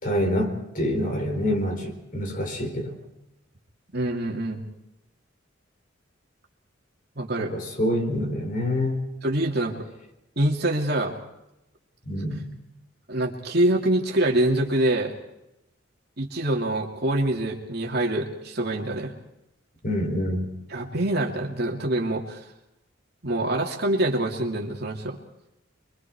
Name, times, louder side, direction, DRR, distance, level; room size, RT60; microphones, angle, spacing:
voice 1, 0.0-3.0 7.5-9.0 12.1-12.4 19.8-20.5, left 1 dB, 45° left, 5 dB, 4.5 m, -26 dB
voice 2, 3.9-4.6 7.2-7.5 9.2-9.8 10.4-11.1 13.1-15.1 16.2-19.1 20.7-22.5 23.2-25.2, right 1 dB, 50° right, 0 dB, 2.7 m, -25 dB
27.5 x 23.5 x 4.8 m, 0.87 s
head